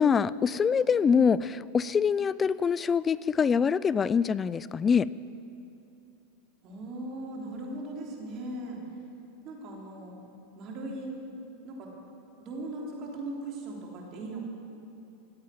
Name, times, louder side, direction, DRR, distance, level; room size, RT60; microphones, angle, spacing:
voice 1, 0.0-5.1, left 6 dB, 20° left, 19 dB, 0.3 m, -24 dB
voice 2, 6.6-8.8 9.4-10.1 10.5-11.1 11.6-11.9 12.4-14.4, right 2 dB, 40° right, -1 dB, 3.4 m, -38 dB
14.5 x 8.8 x 9.4 m, 2.8 s
supercardioid pair, 130°, 0 cm